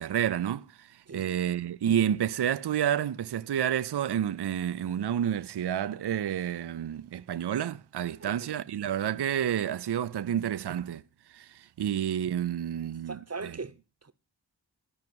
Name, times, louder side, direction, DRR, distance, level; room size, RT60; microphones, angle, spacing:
voice 1, 0.0-11.0 11.3-13.2, right 10 dB, 65° right, 0.5 m, -29 dB
voice 2, 1.1-1.4 8.1-8.5 13.1-14.1, right 4 dB, 35° right, 0.9 m, -41 dB
13.5 x 4.8 x 7.8 m
wide cardioid pair, 45°, 43 cm